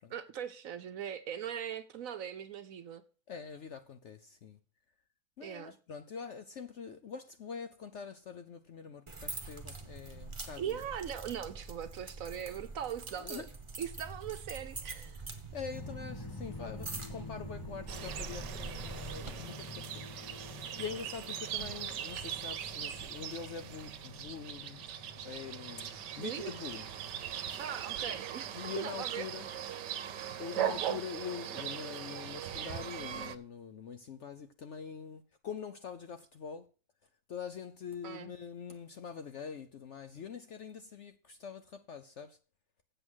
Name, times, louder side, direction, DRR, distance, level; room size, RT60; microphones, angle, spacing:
voice 1, 0.1-3.0 5.4-5.8 10.6-13.5 13.8-15.2 26.2-26.5 27.6-29.3 38.0-38.3, right 9 dB, 60° right, 1.0 m, -40 dB
voice 2, 3.3-4.6 5.4-10.8 13.2-13.5 15.5-20.0 20.5-24.8 25.2-26.9 28.5-29.5 30.3-36.7 37.3-42.4, left 6 dB, 60° left, 0.8 m, -44 dB
sound 1, 9.1-19.3, right 3 dB, 20° right, 1.0 m, -45 dB
sound 2, 15.7-29.7, left 2 dB, 25° left, 0.5 m, -49 dB
sound 3, 17.9-33.4, right 10 dB, 85° right, 1.4 m, -40 dB
8.0 x 7.8 x 6.2 m
omnidirectional pair, 1.8 m